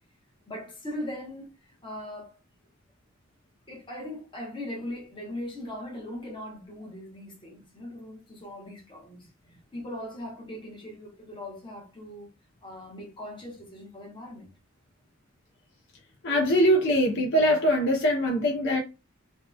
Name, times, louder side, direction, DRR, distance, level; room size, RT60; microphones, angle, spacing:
voice 1, 0.5-2.4 3.7-9.3 9.7-12.3 12.6-14.5, left 1 dB, 25° left, 0.9 m, -39 dB
voice 2, 16.2-18.8, equal, 60° left, 0.5 m, -22 dB
2.8 x 2.1 x 2.2 m
head